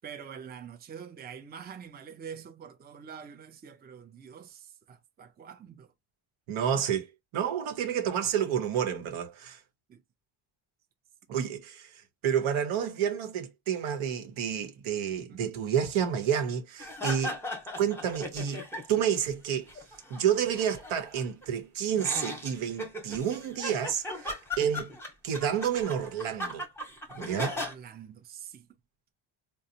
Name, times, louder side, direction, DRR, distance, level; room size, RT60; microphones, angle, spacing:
voice 1, 0.0-5.9 9.9-10.0 15.3-15.6 27.3-28.8, right 7 dB, 20° right, 0.4 m, -45 dB
voice 2, 6.5-9.6 11.3-17.4 17.8-19.7 20.1-24.9 25.2-26.7 27.1-27.5, right 8 dB, 85° right, 1.0 m, -30 dB
sound 1, 16.8-19.2 19.5-21.4 22.0-27.7, left 1 dB, 5° left, 0.9 m, -38 dB
3.9 x 2.1 x 2.7 m
cardioid pair, 120°, 48 cm